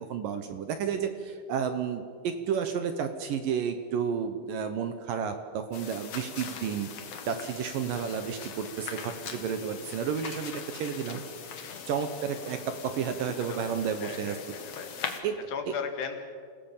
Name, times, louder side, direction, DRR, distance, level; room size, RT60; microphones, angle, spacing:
voice 1, 0.0-6.9 7.3-11.2 11.9-14.4 15.2-15.4 15.7-15.8, right 7 dB, 70° right, 8 dB, 2.3 m, -31 dB
sound 1, 5.7-15.2, left 6 dB, 50° left, 2.1 m, -41 dB
voice 2, 14.0-16.2, left 6 dB, 75° left, 5 dB, 4.2 m, -38 dB
28.0 x 17.5 x 7.3 m, 2.1 s
omnidirectional pair, 4.9 m